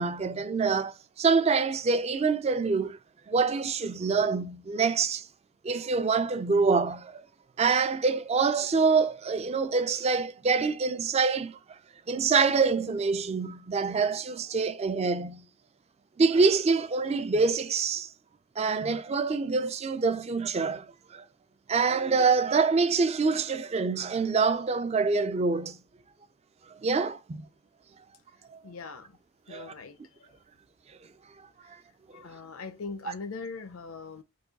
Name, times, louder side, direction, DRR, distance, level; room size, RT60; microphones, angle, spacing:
voice 1, 0.0-3.0 3.3-5.3 5.6-7.2 7.6-11.6 12.1-15.4 16.2-18.1 18.6-21.2 21.7-25.8 26.8-27.4 28.5-28.6 29.5-29.7, right 4 dB, 30° right, 0.3 m, -26 dB
voice 2, 28.6-29.2 29.5-30.4 31.6-31.8 32.1-34.2, left 4 dB, 70° left, 0.5 m, -41 dB
4.7 x 2.3 x 3.9 m
head